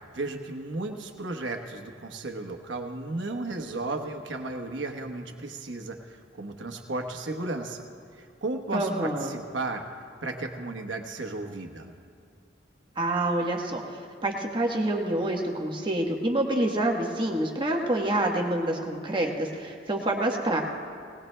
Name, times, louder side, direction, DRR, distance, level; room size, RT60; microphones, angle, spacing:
voice 1, 0.1-7.8 8.2-9.8 10.2-11.9, right 2 dB, 75° right, 4 dB, 1.1 m, -34 dB
voice 2, 8.7-9.3 13.0-13.8 14.2-20.6, right 1 dB, 25° right, 0 dB, 1.1 m, -27 dB
19.5 x 19.5 x 2.2 m, 2.2 s
head